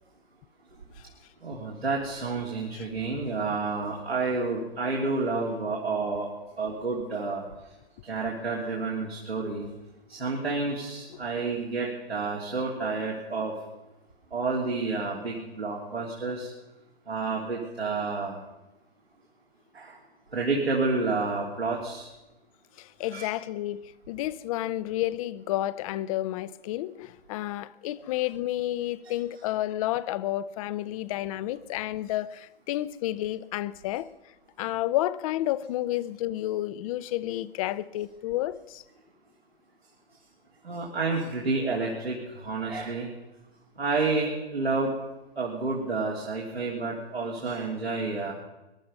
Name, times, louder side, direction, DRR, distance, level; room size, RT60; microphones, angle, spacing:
voice 1, 1.4-6.3 6.6-7.4 8.0-9.7 10.1-13.5 14.3-16.5 17.1-18.4 19.7-20.0 20.3-22.1 23.1-23.3 40.6-43.1 43.8-44.9 45.4-48.3, right 3 dB, 85° right, 3.2 m, -29 dB
voice 2, 22.8-23.8 24.1-34.1 34.6-38.8, left 14 dB, 35° left, 0.6 m, -30 dB
22.0 x 12.0 x 5.5 m
figure-of-eight pair, 115°, 30 cm